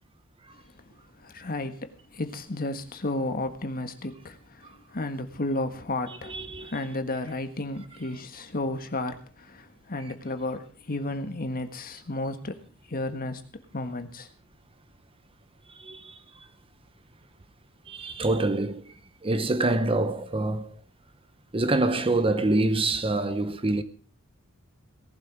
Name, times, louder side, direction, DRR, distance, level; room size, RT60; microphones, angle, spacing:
voice 1, 0.5-0.8 1.2-13.4 13.7-14.3, left 2 dB, 45° left, 1.5 m, -33 dB
voice 2, 6.1-6.7 15.7-16.5 17.9-20.8 21.5-23.8, right 2 dB, 25° right, 0.8 m, -26 dB
18.5 x 11.5 x 4.8 m
head